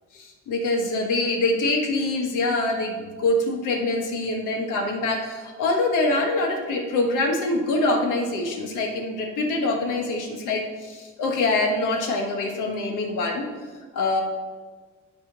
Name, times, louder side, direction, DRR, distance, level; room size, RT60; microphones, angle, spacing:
voice 1, 0.1-13.5 13.9-14.2, left 2 dB, 85° left, 2 dB, 1.3 m, -24 dB
9.7 x 3.6 x 5.9 m, 1.4 s
cardioid pair, 90°, 30 cm